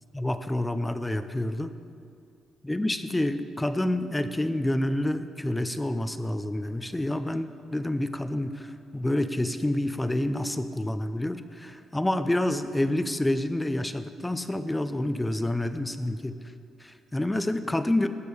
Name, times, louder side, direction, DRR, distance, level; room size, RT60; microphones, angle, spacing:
voice 1, 0.1-1.7 2.6-16.4 16.8-18.1, left 1 dB, 10° left, 10 dB, 0.7 m, -28 dB
19.0 x 6.8 x 5.3 m, 2.5 s
cardioid pair, 90°, 0 cm